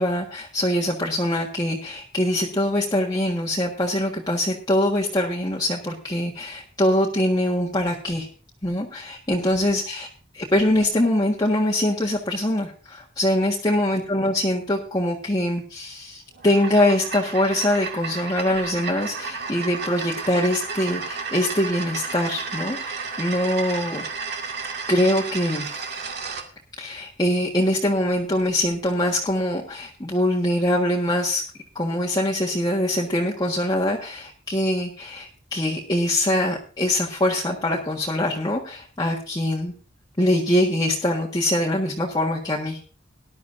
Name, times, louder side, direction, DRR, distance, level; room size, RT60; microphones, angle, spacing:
voice 1, 0.0-8.3 8.6-10.1 10.3-24.0 24.9-25.8 26.8-31.4 31.7-39.7 40.2-42.8, left 1 dB, 20° left, -3 dB, 1.5 m, -23 dB
sound 1, 16.3-26.5, right 5 dB, 60° right, 2.1 m, -32 dB
19.0 x 11.5 x 2.6 m, 0.39 s
head